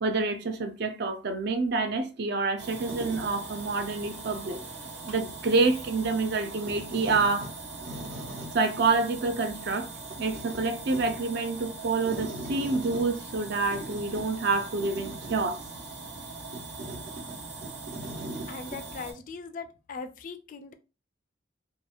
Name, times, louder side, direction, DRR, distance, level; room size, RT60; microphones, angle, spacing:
voice 1, 0.0-4.6 5.1-7.5 8.5-9.9 10.2-15.6, right 3 dB, 55° right, 0.4 m, -27 dB
sound 1, 2.6-19.1, right 2 dB, 75° right, 1.1 m, -39 dB
voice 2, 18.5-20.7, left 4 dB, 40° left, 0.3 m, -40 dB
2.9 x 2.3 x 2.4 m
head